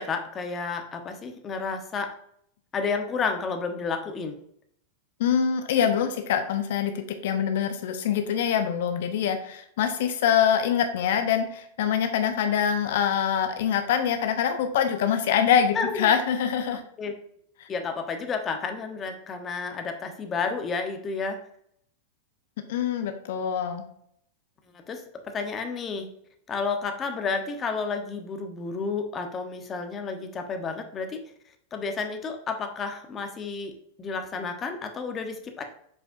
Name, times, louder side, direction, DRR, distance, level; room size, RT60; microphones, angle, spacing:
voice 1, 0.0-2.1 2.7-4.4 15.7-16.1 17.0-17.1 17.7-21.4 24.9-26.1 26.5-31.2 31.7-35.6, left 4 dB, 20° left, 5 dB, 0.9 m, -31 dB
voice 2, 5.2-16.8 17.6-17.7 22.7-23.8, left 8 dB, 70° left, 7 dB, 0.8 m, -24 dB
7.3 x 5.0 x 2.6 m, 0.68 s
supercardioid pair, 145°, 0 cm